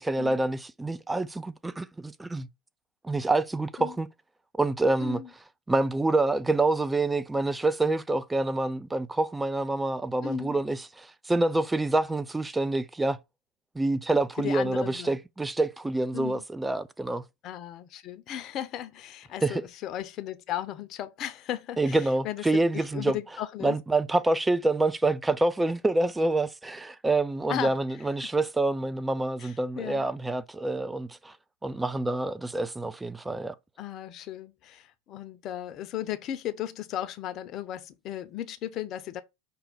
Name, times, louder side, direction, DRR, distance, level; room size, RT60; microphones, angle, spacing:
voice 1, 0.0-2.5 3.0-4.1 4.6-5.2 5.7-13.2 13.7-17.2 19.4-19.6 21.8-23.2 23.6-31.3 31.6-33.5, right 2 dB, 10° right, 0.4 m, -27 dB
voice 2, 10.2-10.6 14.4-15.2 16.1-16.4 17.4-22.4 22.7-23.8 27.5-27.8 28.2-28.3 29.4-30.1 33.8-39.2, left 11 dB, 45° left, 0.6 m, -36 dB
5.5 x 2.2 x 3.9 m
hypercardioid pair, 90°, 0 cm